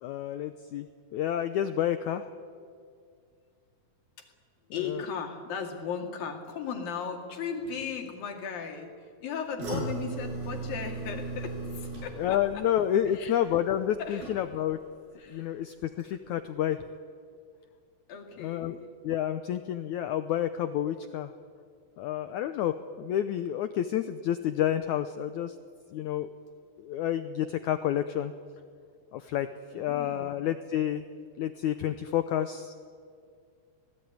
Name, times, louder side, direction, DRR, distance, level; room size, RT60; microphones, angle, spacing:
voice 1, 0.0-0.9 1.1-2.3 4.9-5.0 9.7-9.8 12.2-14.8 15.3-16.8 18.4-18.8 19.0-21.3 22.0-25.5 25.9-26.3 26.8-28.3 29.1-29.5 29.7-31.0 31.4-32.9, left 11 dB, 85° left, 10 dB, 1.7 m, -29 dB
voice 2, 4.7-12.6 13.1-13.4 14.0-14.3 15.2-15.7 18.1-18.8 29.7-30.5, left 6 dB, 65° left, 3 dB, 4.1 m, -37 dB
sound 1, 9.6-14.8 15.1-15.6 16.0-16.1, right 3 dB, 70° right, 8.7 m, -38 dB
26.0 x 18.5 x 9.4 m, 2.2 s
omnidirectional pair, 4.4 m